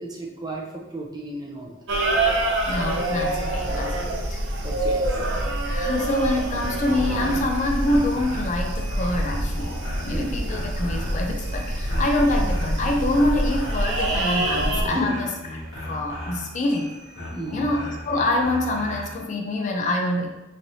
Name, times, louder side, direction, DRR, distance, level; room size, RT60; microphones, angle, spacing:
voice 1, 0.0-1.7 4.6-5.1 10.1-10.3 14.8-15.2 17.3-17.7, equal, 20° right, -1 dB, 0.5 m, -32 dB
sound 1, 1.9-14.8, right 1 dB, 65° right, 0.6 m, -26 dB
voice 2, 2.7-4.4 5.6-15.3 15.9-16.9 17.5-20.3, left 1 dB, 40° left, 1 dB, 0.4 m, -25 dB
sound 2, 6.0-19.2, left 1 dB, 80° left, 1.2 m, -37 dB
4.1 x 3.2 x 2.7 m, 1.0 s
head